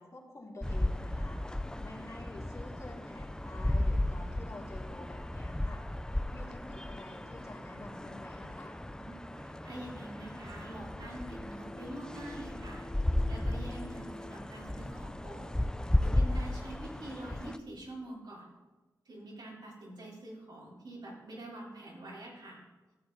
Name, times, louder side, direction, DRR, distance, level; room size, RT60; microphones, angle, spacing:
voice 1, 0.0-5.8 6.3-8.8, left 2 dB, 45° left, -3 dB, 3.1 m, -49 dB
sound 1, 0.6-17.6, left 1 dB, 10° left, 0.7 m, -35 dB
voice 2, 8.9-12.8 13.3-15.5 16.0-18.5 19.1-22.6, right 1 dB, 75° right, -5 dB, 4.1 m, -45 dB
13.5 x 8.1 x 4.2 m, 1.2 s
cardioid pair, 40°, 7 cm